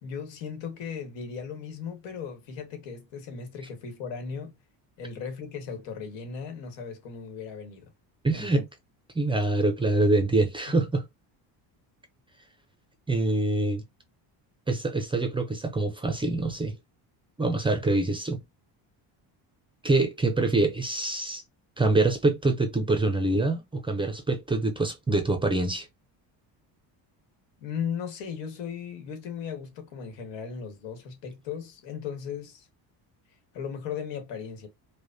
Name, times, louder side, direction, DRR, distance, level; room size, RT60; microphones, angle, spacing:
voice 1, 0.0-4.5 5.0-7.8 8.3-8.6 27.6-32.7 33.5-34.7, left 6 dB, 85° left, 1.5 m, -37 dB
voice 2, 8.2-8.6 9.2-11.0 13.1-13.8 14.7-16.8 17.4-18.4 19.8-21.4 21.8-25.9, right 2 dB, 10° right, 0.4 m, -25 dB
4.9 x 2.1 x 2.6 m
cardioid pair, 145°, 43 cm